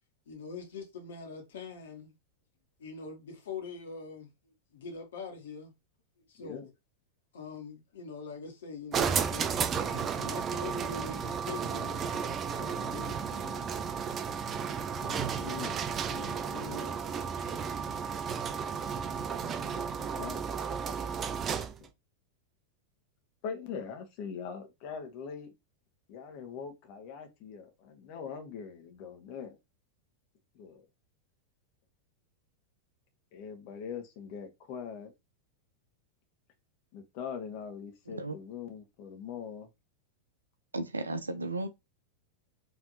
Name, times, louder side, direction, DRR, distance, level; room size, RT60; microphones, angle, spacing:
voice 1, 0.3-2.1 2.8-5.7 6.3-6.7 7.3-13.8 15.0-15.5 16.1-17.1, left 5 dB, 60° left, 1.8 m, -44 dB
sound 1, 8.9-21.8, right 7 dB, 25° right, 0.5 m, -33 dB
voice 2, 15.0-15.8 19.7-20.4 21.8-21.9 23.4-25.5 26.1-29.6 30.5-30.8 33.3-35.1 36.9-39.7, left 6 dB, 45° left, 1.4 m, -42 dB
voice 3, 40.7-41.7, right 2 dB, 80° right, 0.6 m, -34 dB
4.9 x 3.4 x 2.9 m
figure-of-eight pair, 90°, 0 cm